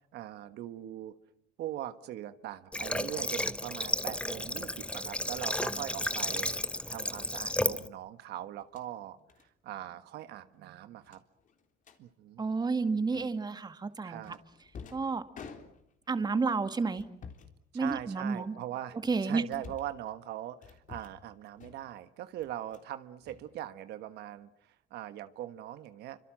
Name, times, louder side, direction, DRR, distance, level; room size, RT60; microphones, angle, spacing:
voice 1, 0.1-1.1 1.6-11.2 12.0-12.4 14.0-14.4 17.7-26.2, right 12 dB, 80° right, 11 dB, 1.5 m, -41 dB
Water / Water tap faucet, 2.7-7.9, left 1 dB, 5° left, 1.1 m, -33 dB
sound 1, 5.7-6.0 7.5-7.7 8.5-8.9 9.3-9.5 9.8-10.0 10.3-10.4 11.1-12.0 13.1-13.6 14.2-16.1 16.9-17.5 17.8-18.5 19.0-20.0 20.6-21.3 21.6-22.0 22.4-22.9 23.2-24.1, left 6 dB, 50° left, 3.7 m, -51 dB
voice 2, 12.4-14.4 14.9-15.2 16.1-17.0 17.7-18.6 19.0-19.4, right 4 dB, 25° right, 10 dB, 2.1 m, -30 dB
29.0 x 25.5 x 7.6 m, 0.73 s
cardioid pair, 110°, 17 cm